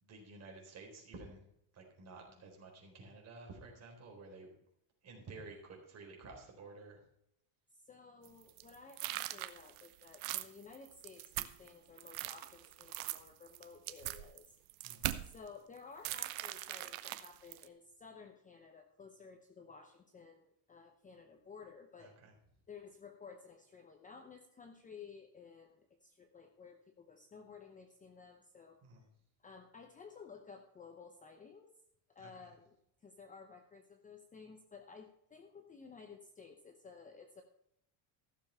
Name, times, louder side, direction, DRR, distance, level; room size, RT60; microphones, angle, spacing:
voice 1, 0.0-1.5 1.7-4.5 5.0-7.0 14.8-15.1 22.0-22.3 28.8-29.0 32.2-32.3, right 3 dB, 30° right, 0 dB, 4.2 m, -52 dB
voice 2, 7.7-14.6 15.2-22.1 22.7-28.8 29.4-31.8 32.1-32.8 33.0-37.4, left 5 dB, 15° left, 5 dB, 0.8 m, -55 dB
sound 1, 8.2-11.7 12.0-15.4 16.0-17.7, right 16 dB, 70° right, 1.0 m, -41 dB
15.0 x 7.0 x 5.7 m, 0.75 s
cardioid pair, 160°, 49 cm